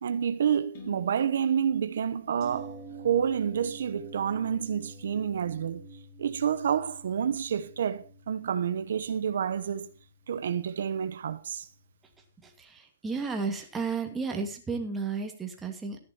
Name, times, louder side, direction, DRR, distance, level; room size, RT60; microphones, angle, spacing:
voice 1, 0.0-2.7 3.0-5.8 6.2-9.9 10.3-11.7, right 8 dB, 75° right, 0.9 m, -29 dB
sound 1, 0.7-4.6, left 6 dB, 45° left, 5.6 m, -54 dB
sound 2, 2.4-12.3 12.6-12.7, right 3 dB, 25° right, 3.1 m, -49 dB
voice 2, 12.4-16.0, right 4 dB, 10° right, 2.3 m, -33 dB
14.0 x 10.5 x 4.4 m
hypercardioid pair, 160°, 0 cm